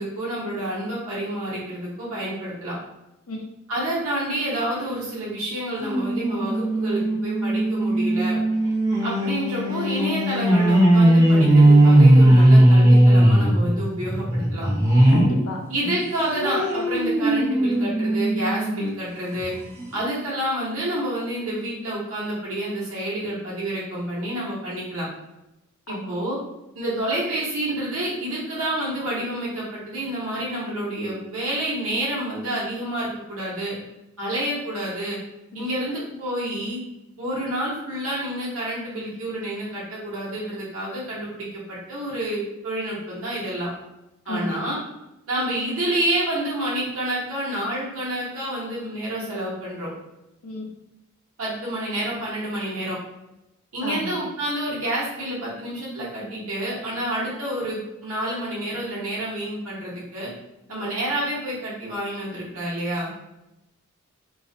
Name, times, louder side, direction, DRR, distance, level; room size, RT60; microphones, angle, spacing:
voice 1, 0.0-2.8 3.7-8.4 9.0-14.7 15.7-19.5 19.9-25.1 25.9-26.4 26.7-33.7 34.2-35.2 35.5-36.8 37.2-43.7 44.3-44.8 45.3-49.9 51.4-53.0 53.7-60.3 60.7-63.1, right 1 dB, 70° right, -7 dB, 0.8 m, -28 dB
sound 1, 5.8-15.4 15.8-18.9 19.4-19.5 19.8-19.9, right 1 dB, 15° right, 0.5 m, -18 dB
voice 2, 15.1-15.6 25.9-26.1 35.5-35.7 44.3-44.6 50.4-50.7 53.8-54.2, left 1 dB, 85° left, 0 dB, 0.6 m, -32 dB
2.3 x 2.0 x 2.6 m, 0.91 s
head